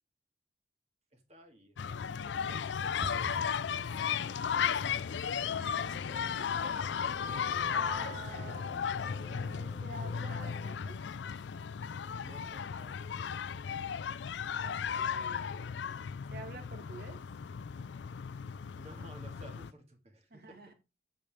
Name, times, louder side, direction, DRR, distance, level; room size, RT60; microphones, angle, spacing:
voice 1, 1.1-5.1 12.2-13.6 18.8-20.6, right 1 dB, 35° right, 2.1 m, -56 dB
sound 1, 1.8-19.7, left 7 dB, 80° left, 0.4 m, -35 dB
sound 2, 3.0-13.7 14.0-14.7 14.9-15.3 15.5-15.9 16.2-16.3 16.8-17.3 17.7-17.8 18.3-18.4, right 1 dB, 20° right, 0.7 m, -53 dB
sound 3, 4.1-11.1, equal, 15° left, 1.1 m, -54 dB
voice 2, 5.5-7.2 7.7-8.7 9.3-11.1 14.6-15.8 16.3-17.2 20.3-20.7, right 3 dB, 55° right, 1.9 m, -48 dB
8.3 x 7.2 x 3.5 m
head